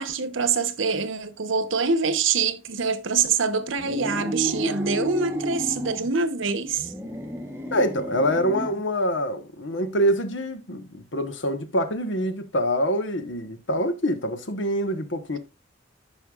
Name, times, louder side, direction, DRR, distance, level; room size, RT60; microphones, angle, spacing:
voice 1, 0.0-6.9, right 5 dB, 75° right, 1.0 m, -25 dB
sound 1, 3.8-6.1 6.7-8.9, equal, 10° right, 1.0 m, -32 dB
voice 2, 7.7-15.4, equal, 70° left, 1.2 m, -25 dB
14.5 x 5.5 x 2.4 m
head